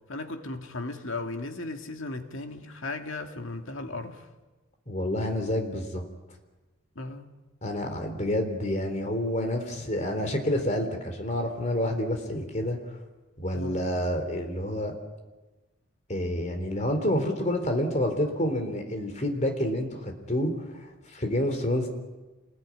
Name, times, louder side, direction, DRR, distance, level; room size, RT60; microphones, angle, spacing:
voice 1, 0.1-4.3 7.0-7.2 13.5-13.9, left 2 dB, 65° left, 2.3 m, -36 dB
voice 2, 4.9-6.0 7.6-12.8 13.4-14.9 16.1-21.9, left 1 dB, 30° left, 3.8 m, -28 dB
27.5 x 21.0 x 9.8 m
head